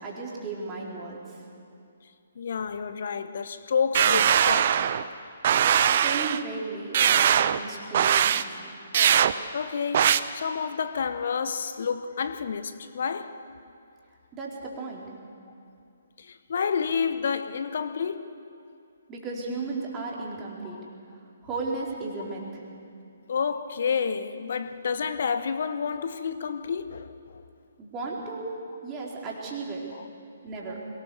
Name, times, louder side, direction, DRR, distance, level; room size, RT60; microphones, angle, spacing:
voice 1, 0.0-1.4 6.0-8.5 14.3-15.1 19.1-20.8 21.4-22.6 27.8-28.4 28.8-29.8 30.4-30.8, right 3 dB, 20° right, 4.0 m, -35 dB
voice 2, 2.4-4.8 7.8-7.9 9.5-13.4 16.2-18.4 20.6-20.8 22.4-22.5 23.3-27.4 29.9-30.1, left 6 dB, 55° left, 0.9 m, -30 dB
sound 1, 3.9-5.0 5.4-6.4 6.9-7.6 7.9-8.4 8.9-9.3 9.9-10.2, right 9 dB, 45° right, 0.6 m, -21 dB
22.5 x 18.5 x 7.0 m
figure-of-eight pair, 135°, 0 cm